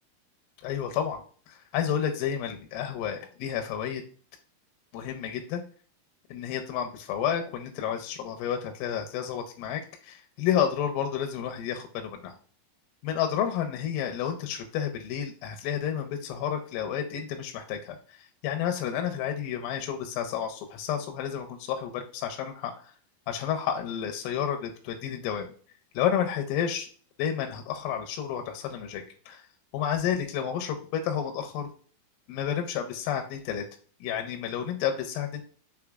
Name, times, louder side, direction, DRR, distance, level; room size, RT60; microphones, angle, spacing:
voice 1, 0.6-1.2 1.5-4.0 4.9-5.6 6.3-12.4 13.0-18.2 18.4-22.9 23.3-25.5 25.9-26.9 27.2-29.4 29.7-31.7 32.3-33.7 34.0-35.4, left 9 dB, 80° left, 4 dB, 2.2 m, -30 dB
6.0 x 3.3 x 2.2 m, 0.42 s
omnidirectional pair, 4.5 m